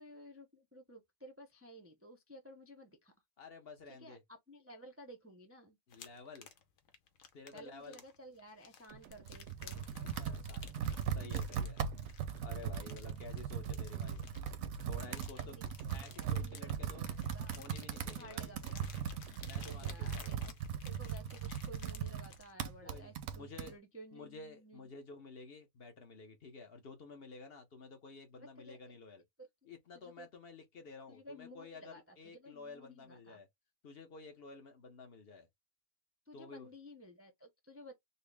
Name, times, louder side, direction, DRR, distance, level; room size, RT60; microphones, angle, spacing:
voice 1, 0.0-3.1 4.0-5.8 7.5-9.8 15.3-16.7 17.1-17.6 17.9-19.0 19.6-20.5 20.8-24.9 28.3-29.0 29.4-29.5 29.9-30.3 31.1-33.4 36.3-37.9, right 1 dB, 15° right, 0.5 m, -55 dB
voice 2, 3.4-4.2 5.9-6.5 7.3-8.0 10.0-10.7 11.1-11.8 12.1-14.2 14.8-15.6 15.9-17.1 17.5-18.5 19.4-20.4 22.8-23.7 24.1-29.2 29.6-33.5 33.8-35.5 36.3-36.7, left 3 dB, 50° left, 0.9 m, -52 dB
sound 1, 5.9-22.5, left 7 dB, 80° left, 1.1 m, -56 dB
sound 2, 8.9-21.1, right 8 dB, 70° right, 0.8 m, -55 dB
Computer keyboard, 9.1-23.7, right 7 dB, 85° right, 1.1 m, -39 dB
4.1 x 2.0 x 3.3 m
omnidirectional pair, 1.4 m